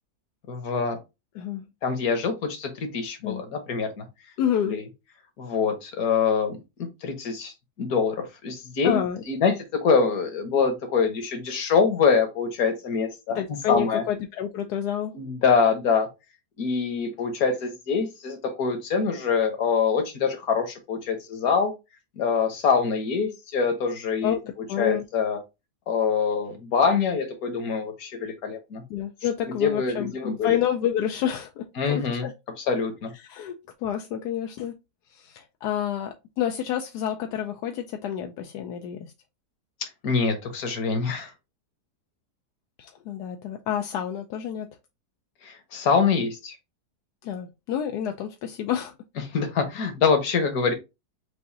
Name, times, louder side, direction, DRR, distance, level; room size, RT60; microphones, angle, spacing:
voice 1, 0.5-1.0 1.8-4.1 4.7-4.8 5.4-9.0 9.3-13.4 13.7-14.0 15.1-16.1 16.6-21.7 22.2-24.4 24.8-25.4 25.9-28.8 29.6-30.6 31.8-32.3 32.7-33.1 39.8-41.3 45.4-46.6 49.3-50.7, left 5 dB, 65° left, 1.6 m, -24 dB
voice 2, 4.4-4.8 8.8-9.2 13.3-15.2 24.2-25.0 28.9-32.3 33.1-34.7 35.1-39.1 42.8-44.7 47.2-48.9, left 9 dB, 85° left, 1.2 m, -29 dB
6.8 x 2.6 x 2.7 m
omnidirectional pair, 1.7 m